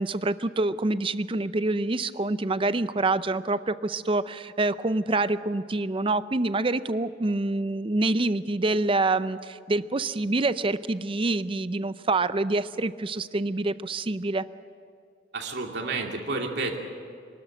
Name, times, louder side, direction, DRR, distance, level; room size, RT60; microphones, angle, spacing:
voice 1, 0.0-14.4, right 2 dB, 30° right, 14 dB, 0.5 m, -26 dB
voice 2, 15.3-16.8, right 3 dB, 60° right, 1 dB, 2.7 m, -30 dB
24.0 x 13.0 x 10.0 m, 2.3 s
head